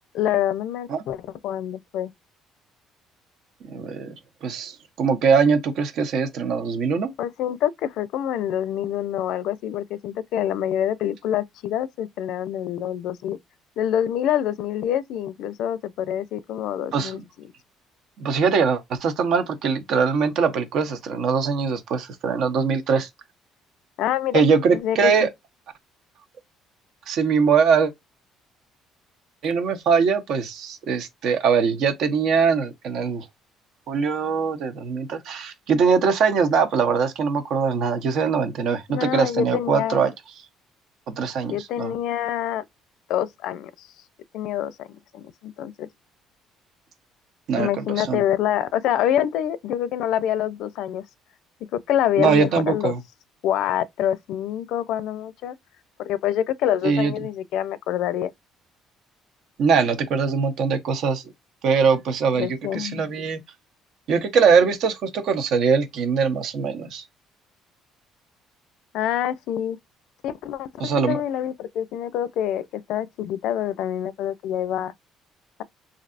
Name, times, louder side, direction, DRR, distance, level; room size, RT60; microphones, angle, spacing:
voice 1, 0.1-2.1 7.2-13.4 13.8-17.5 24.0-24.4 24.7-25.1 38.9-40.0 41.5-42.7 43.1-43.9 44.3-45.9 47.6-51.0 51.7-52.9 53.4-55.6 56.0-58.3 62.4-63.1 68.9-69.8 70.2-74.9, left 11 dB, 70° left, 0.4 m, -26 dB
voice 2, 3.7-4.1 4.4-7.1 16.9-17.2 18.2-23.1 24.3-25.3 27.1-27.9 29.4-33.2 33.9-40.1 41.1-41.9 47.5-48.2 52.2-53.0 56.8-57.1 59.6-61.2 61.6-63.4 64.1-67.0 70.8-71.2, right 5 dB, 60° right, 0.8 m, -22 dB
3.3 x 2.6 x 2.5 m
cardioid pair, 140°, 0 cm